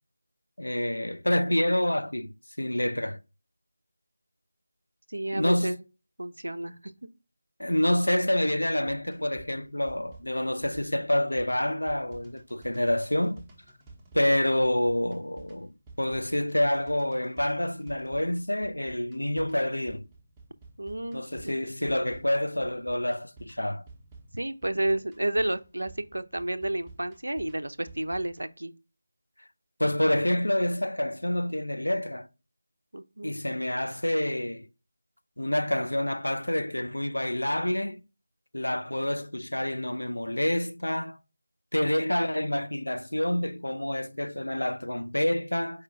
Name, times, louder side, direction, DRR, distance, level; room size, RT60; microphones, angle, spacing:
voice 1, 0.6-3.2 5.3-5.8 7.6-13.4 14.1-20.0 21.1-23.8 29.8-32.3 33.2-34.7 35.4-38.0 38.5-41.2 41.7-45.8, left 1 dB, 75° left, 0.4 m, -27 dB
voice 2, 5.1-5.8 6.2-6.9 20.8-21.2 24.3-28.7 32.9-33.3, right 1 dB, 70° right, 0.4 m, -31 dB
sound 1, 8.8-28.5, right 3 dB, 10° right, 0.7 m, -52 dB
4.8 x 2.3 x 4.0 m
figure-of-eight pair, 165°, 0 cm